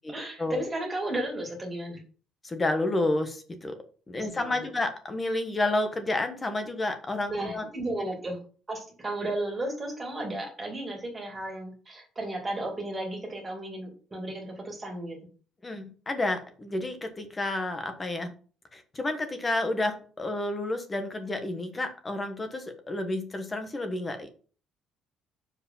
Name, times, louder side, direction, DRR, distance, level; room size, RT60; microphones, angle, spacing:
voice 1, 0.1-2.0 4.1-4.7 7.3-8.4 8.7-15.2, right 1 dB, 15° right, 0 dB, 2.6 m, -34 dB
voice 2, 2.4-3.8 4.1-7.7 15.6-18.3 18.7-24.4, left 2 dB, 15° left, 7 dB, 1.2 m, -30 dB
6.7 x 5.0 x 5.6 m, 0.39 s
cardioid pair, 155°, 0 cm